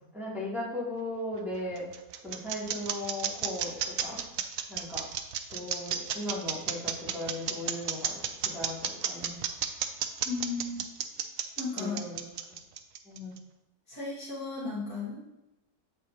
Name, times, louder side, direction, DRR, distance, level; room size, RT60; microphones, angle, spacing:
voice 1, 0.1-1.9 2.2-4.3 4.7-5.0 5.5-9.4 11.7-12.2 13.0-13.4, left 1 dB, ahead, -8 dB, 2.3 m, -37 dB
sound 1, 1.3-13.4, right 9 dB, 70° right, 0.8 m, -32 dB
voice 2, 10.2-10.8 11.6-12.0 13.9-15.2, left 4 dB, 55° left, -6 dB, 2.1 m, -35 dB
7.7 x 6.8 x 2.8 m, 0.92 s
omnidirectional pair, 1.9 m